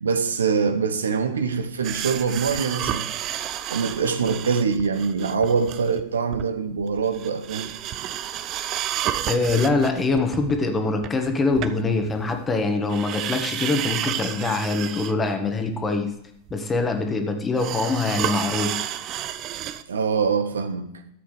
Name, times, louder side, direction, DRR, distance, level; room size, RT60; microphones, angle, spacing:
voice 1, 0.0-3.1 3.7-7.7 19.9-20.9, right 5 dB, 70° right, 0.9 m, -24 dB
sound 1, 1.8-6.0 6.3-6.5 6.8-12.5 12.9-15.3 15.6-15.7 16.5-16.6 17.6-19.8 20.2-20.3, right 11 dB, 35° right, 0.5 m, -31 dB
voice 2, 9.2-16.1 16.5-18.8, left 3 dB, 15° left, 1.5 m, -24 dB
13.0 x 8.1 x 3.3 m
figure-of-eight pair, 90°, 0 cm